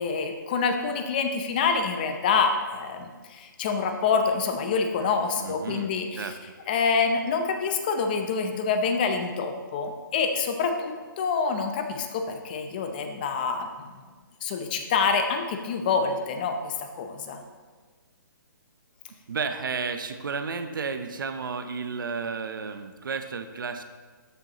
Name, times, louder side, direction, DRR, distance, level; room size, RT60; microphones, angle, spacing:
voice 1, 0.0-6.3 6.7-14.0 14.4-17.4, left 5 dB, 25° left, 6 dB, 0.7 m, -27 dB
voice 2, 5.4-6.4 19.3-23.8, right 5 dB, 75° right, 8 dB, 0.8 m, -32 dB
13.5 x 6.6 x 3.1 m, 1.5 s
hypercardioid pair, 170°, 11 cm